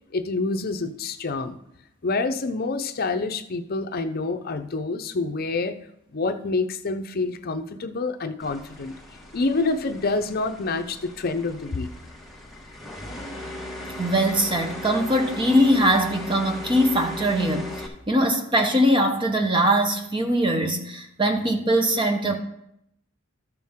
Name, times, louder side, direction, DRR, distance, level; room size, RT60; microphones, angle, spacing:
voice 1, 0.1-1.6 2.0-5.8 6.1-8.9 9.3-11.9, left 3 dB, 50° left, 8 dB, 0.6 m, -27 dB
sound 1, 8.4-17.9, left 1 dB, ahead, 1.3 m, -38 dB
voice 2, 14.0-22.4, equal, 25° right, 4 dB, 0.9 m, -21 dB
13.5 x 6.0 x 3.6 m, 0.77 s
head